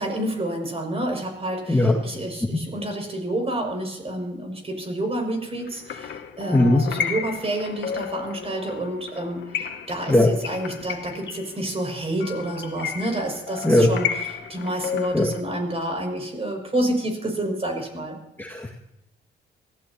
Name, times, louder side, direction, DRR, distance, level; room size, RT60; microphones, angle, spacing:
voice 1, 0.0-18.2, right 1 dB, 30° right, 2 dB, 6.5 m, -29 dB
sound 1, 5.7-15.4, left 7 dB, 65° left, 1.9 m, -33 dB
voice 2, 6.5-6.8 10.1-10.3 13.6-13.9 15.1-15.3 18.4-18.7, left 1 dB, 10° left, -2 dB, 2.1 m, -18 dB
23.5 x 16.5 x 3.0 m, 0.86 s
cardioid pair, 90°, 20 cm